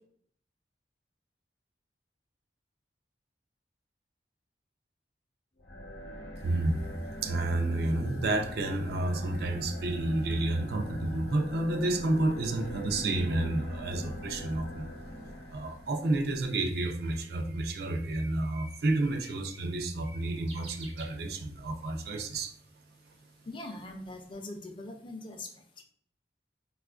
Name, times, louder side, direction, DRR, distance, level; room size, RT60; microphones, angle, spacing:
sound 1, 5.6-16.1, left 1 dB, 75° left, 0.7 m, -43 dB
voice 1, 6.4-6.8 7.2-14.9 15.5-22.5, right 2 dB, 60° right, 7 dB, 0.4 m, -30 dB
Bird, 15.5-21.7, right 2 dB, 85° right, 0.9 m, -52 dB
voice 2, 23.5-25.5 25.8-25.9, left 2 dB, 25° left, 4 dB, 0.4 m, -42 dB
4.2 x 2.4 x 2.3 m, 0.64 s
head